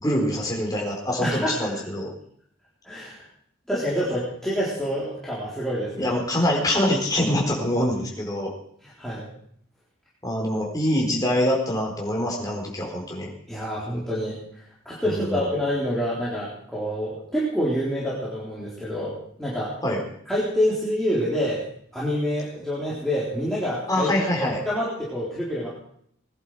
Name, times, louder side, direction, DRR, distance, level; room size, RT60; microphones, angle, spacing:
voice 1, 0.0-2.1 6.0-8.5 10.2-13.3 15.1-15.4 19.8-20.0 23.9-24.6, left 1 dB, 15° left, -1 dB, 4.3 m, -24 dB
voice 2, 1.2-1.7 2.8-3.2 3.7-6.1 9.0-9.3 13.5-14.4 14.9-19.7 20.3-21.6 21.9-24.1 24.4-25.7, equal, ahead, -8 dB, 3.9 m, -27 dB
21.0 x 11.0 x 4.9 m, 0.66 s
head